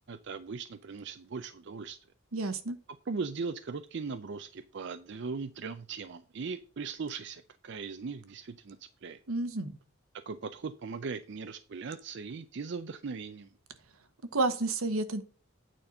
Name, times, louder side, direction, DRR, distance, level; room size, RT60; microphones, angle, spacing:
voice 1, 0.1-2.0 3.1-8.8 9.0-9.2 10.3-13.5, right 4 dB, 55° right, 0.4 m, -39 dB
voice 2, 2.3-2.8 9.3-9.8 14.3-15.2, right 2 dB, 85° right, 1.1 m, -30 dB
9.0 x 4.3 x 5.2 m
head